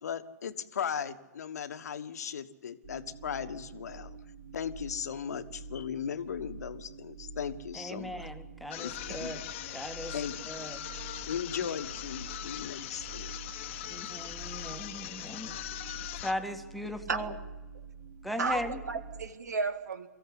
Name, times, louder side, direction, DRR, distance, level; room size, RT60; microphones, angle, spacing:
voice 1, 0.0-4.2 4.5-8.3 8.8-9.4 10.1-10.7 11.3-13.3, left 8 dB, 65° left, 11 dB, 1.4 m, -37 dB
sound 1, 2.8-19.3, right 4 dB, 50° right, 3.1 m, -47 dB
voice 2, 7.7-10.1 10.5-10.9 13.8-15.6 16.2-17.3 18.2-18.8, left 1 dB, ahead, 6 dB, 1.6 m, -38 dB
sound 2, 8.7-16.5, left 13 dB, 45° left, 1.2 m, -41 dB
voice 3, 18.4-20.1, right 4 dB, 70° right, 11 dB, 1.9 m, -33 dB
23.5 x 15.0 x 9.7 m, 1.3 s
figure-of-eight pair, 120°, 9 cm